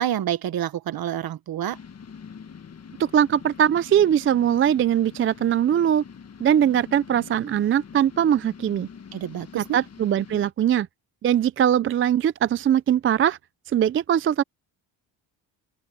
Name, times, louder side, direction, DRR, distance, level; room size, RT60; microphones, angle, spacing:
voice 1, 0.0-1.8 9.1-9.8, right 11 dB, 50° right, 1.1 m, -28 dB
sound 1, 1.7-10.5, left 6 dB, 35° left, 1.4 m, -44 dB
voice 2, 3.0-6.0 6.4-8.9 9.6-10.9 11.2-13.4 13.7-14.4, right 9 dB, 30° right, 0.3 m, -21 dB
open air
cardioid pair, 120°, 45 cm